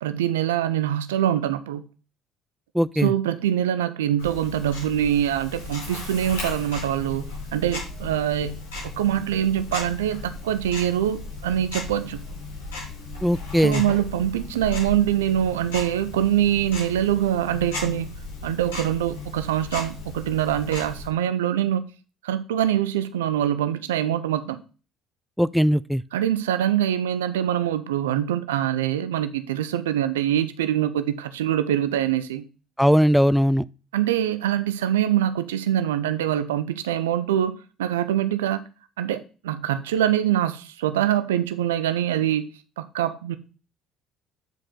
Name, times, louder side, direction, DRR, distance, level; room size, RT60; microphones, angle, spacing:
voice 1, 0.0-1.8 3.0-7.2 7.5-8.6 8.9-12.2 13.6-18.1 18.4-21.8 22.2-24.6 26.1-32.4 33.9-37.5 37.8-38.6 39.0-42.5 42.8-43.4, right 11 dB, 90° right, 0.6 m, -24 dB
voice 2, 2.7-3.1 13.2-13.8 25.4-26.0 32.8-33.6, equal, ahead, 0.3 m, -19 dB
Tick-tock, 4.2-21.1, left 3 dB, 85° left, 4.0 m, -36 dB
8.9 x 5.0 x 3.7 m
hypercardioid pair, 60°, 0 cm